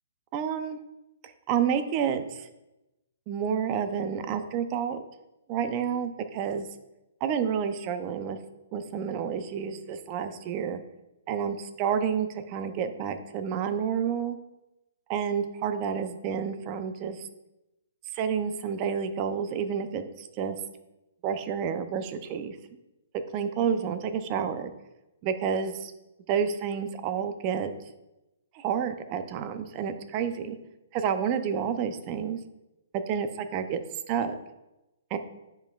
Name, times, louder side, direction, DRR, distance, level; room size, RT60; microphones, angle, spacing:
voice 1, 0.3-0.8 1.2-2.5 3.3-5.0 5.5-6.7 7.2-8.4 8.7-10.8 11.3-14.4 15.1-17.2 18.1-20.6 21.2-22.6 23.3-24.7 25.2-25.9 26.3-27.7 28.5-30.6 30.9-32.4 33.1-33.8 34.1-34.4 35.1-35.2, right 7 dB, 30° right, 9 dB, 0.6 m, -29 dB
9.7 x 5.2 x 2.4 m, 0.97 s
hypercardioid pair, 150°, 0 cm